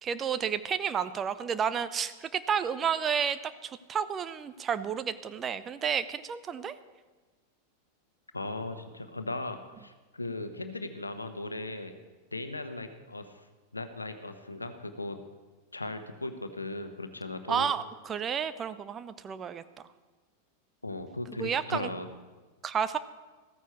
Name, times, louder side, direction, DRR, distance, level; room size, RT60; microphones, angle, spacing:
voice 1, 0.0-6.8 17.5-19.6 21.4-21.9 22.6-23.0, right 7 dB, 25° right, 13 dB, 0.7 m, -31 dB
voice 2, 8.3-12.0 12.3-13.4 13.7-15.2 15.7-17.7 20.8-22.1, left 2 dB, 80° left, 9 dB, 1.0 m, -37 dB
15.0 x 14.0 x 4.5 m, 1.3 s
figure-of-eight pair, 90°, 0 cm